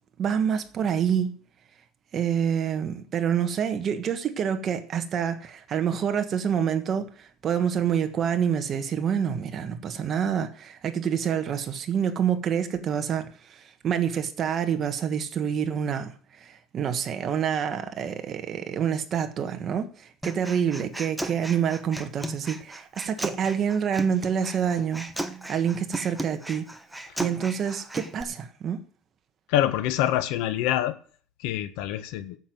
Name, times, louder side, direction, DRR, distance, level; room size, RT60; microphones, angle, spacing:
voice 1, 0.2-1.3 2.1-25.1 25.5-26.6 27.2-28.8, right 8 dB, 30° right, 1.4 m, -27 dB
Human voice, 20.2-28.2, right 1 dB, 5° right, 0.9 m, -36 dB
voice 2, 29.5-30.9 31.4-32.4, left 12 dB, 75° left, 1.4 m, -25 dB
9.3 x 8.0 x 9.3 m
cardioid pair, 165°, 0 cm